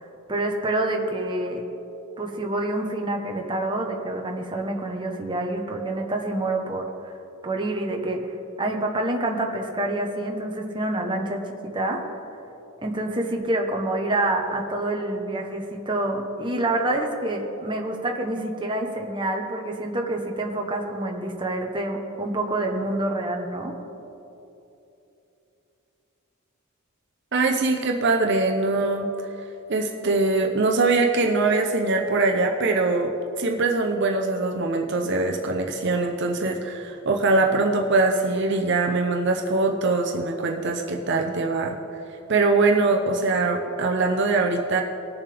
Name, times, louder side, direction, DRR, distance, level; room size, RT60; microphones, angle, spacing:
voice 1, 0.3-1.6 2.2-7.1 7.4-8.2 8.6-12.0 12.8-23.7, right 2 dB, 20° right, 1 dB, 1.0 m, -27 dB
voice 2, 27.3-29.1 29.7-33.1 33.4-41.7 42.3-44.8, right 3 dB, 55° right, 2 dB, 0.7 m, -22 dB
19.5 x 7.1 x 3.4 m, 2.9 s
head